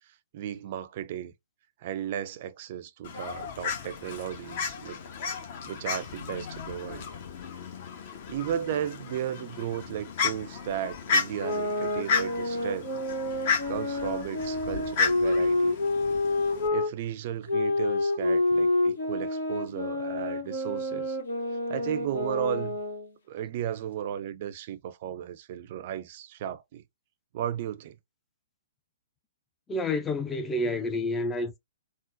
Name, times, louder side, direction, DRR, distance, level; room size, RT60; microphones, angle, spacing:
voice 1, 0.1-1.3 1.8-5.0 5.7-7.1 8.3-12.9 13.7-15.8 16.7-21.2 21.7-22.8 23.3-26.8 27.3-28.0, right 10 dB, 45° right, 0.4 m, -35 dB
Fowl, 3.0-16.7, left 5 dB, 50° left, 1.0 m, -33 dB
sound 1, 11.3-16.9 17.5-23.1, left 2 dB, 70° left, 1.2 m, -28 dB
voice 2, 29.7-31.6, left 2 dB, 15° left, 0.5 m, -29 dB
3.7 x 2.0 x 2.5 m
figure-of-eight pair, 120°, 0 cm